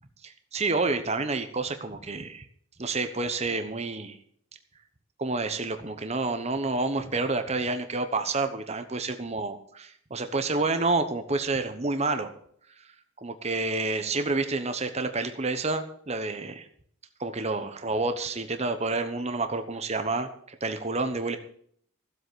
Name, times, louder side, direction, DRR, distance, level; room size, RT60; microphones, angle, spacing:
voice 1, 0.2-2.5 2.8-4.2 5.2-12.3 13.2-16.7 17.2-20.3 20.6-21.4, right 3 dB, 30° right, 8 dB, 1.0 m, -29 dB
15.0 x 8.0 x 6.9 m, 0.63 s
head